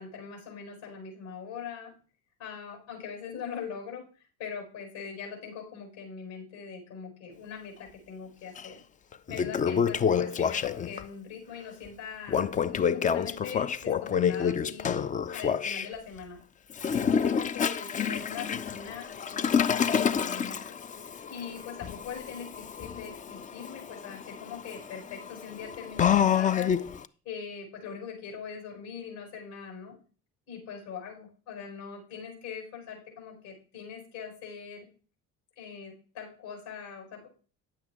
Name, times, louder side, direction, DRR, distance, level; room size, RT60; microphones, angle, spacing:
voice 1, 0.0-1.9 2.4-8.8 9.3-16.4 16.9-20.7 21.3-26.7 27.2-29.9 30.5-34.9 35.6-37.3, left 6 dB, 65° left, 2 dB, 4.8 m, -42 dB
Toilet flush, 8.6-8.7 9.1-11.0 12.3-15.9 16.7-27.0, left 7 dB, 20° left, 0.3 m, -28 dB
9.8 x 8.0 x 3.6 m, 0.40 s
hypercardioid pair, 60°, 48 cm